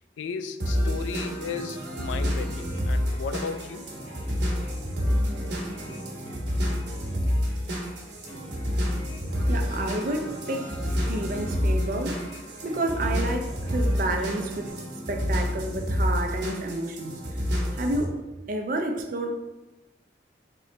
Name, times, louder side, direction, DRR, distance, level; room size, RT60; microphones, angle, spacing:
voice 1, 0.2-3.9, left 5 dB, 90° left, 0.3 m, -35 dB
sound 1, 0.6-18.0, equal, 70° right, 1.0 m, -28 dB
sound 2, 2.7-14.7, equal, 40° left, 1.2 m, -47 dB
voice 2, 9.5-12.2 12.6-14.8 15.1-17.2 17.7-18.2 18.5-19.4, right 1 dB, 45° right, 0.4 m, -30 dB
3.8 x 3.0 x 3.2 m
head